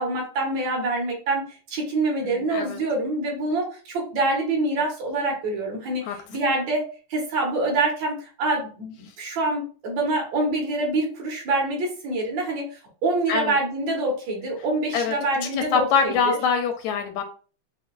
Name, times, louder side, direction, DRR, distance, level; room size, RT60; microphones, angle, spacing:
voice 1, 0.0-6.0 6.3-12.7 13.0-16.4, right 2 dB, 70° right, -1 dB, 2.4 m, -26 dB
voice 2, 2.2-2.8 6.0-6.2 13.3-13.6 14.9-15.1 15.5-17.2, left 6 dB, 80° left, 4 dB, 1.8 m, -24 dB
6.3 x 2.3 x 2.4 m, 0.37 s
omnidirectional pair, 3.3 m